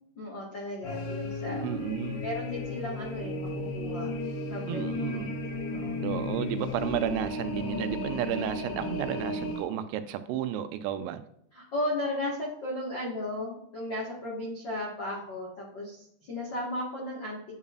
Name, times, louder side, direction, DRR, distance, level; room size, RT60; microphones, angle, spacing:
voice 1, 0.1-1.6 2.2-4.1 4.5-4.9 5.1-5.3 5.7-6.0 8.4-8.5 11.5-17.4, left 1 dB, 50° left, -5 dB, 1.4 m, -35 dB
sound 1, 0.8-9.6, left 2 dB, 75° left, 3.2 m, -34 dB
voice 2, 1.6-2.2 4.7-5.4 6.0-11.2, right 10 dB, 80° right, 10 dB, 2.5 m, -32 dB
9.5 x 5.5 x 2.5 m, 0.75 s
omnidirectional pair, 4.8 m